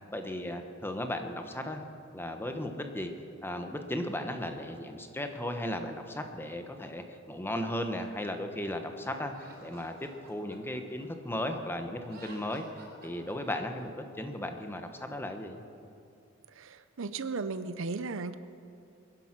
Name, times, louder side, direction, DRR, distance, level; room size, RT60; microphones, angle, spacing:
voice 1, 0.1-1.8 2.1-3.1 3.4-12.6 13.0-13.9 14.2-15.6, left 1 dB, 10° left, 5 dB, 1.1 m, -36 dB
Laughter, 9.3-11.6 12.0-13.8, right 3 dB, 50° right, 4.4 m, -53 dB
voice 2, 16.6-18.3, right 4 dB, 65° right, 12 dB, 0.6 m, -35 dB
21.5 x 11.0 x 6.0 m, 2.5 s
head